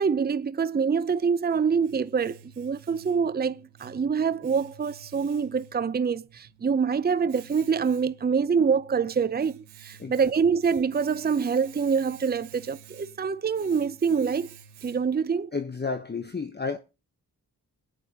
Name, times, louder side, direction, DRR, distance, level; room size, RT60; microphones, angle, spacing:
voice 1, 0.0-14.5 14.8-15.5, right 6 dB, 25° right, 0.6 m, -25 dB
Domestic sounds home sounds, 1.0-15.3, right 8 dB, 90° right, 1.0 m, -51 dB
voice 2, 10.0-10.3 15.5-16.8, left 4 dB, 25° left, 1.0 m, -32 dB
21.5 x 9.3 x 2.9 m
supercardioid pair, 40°, 39 cm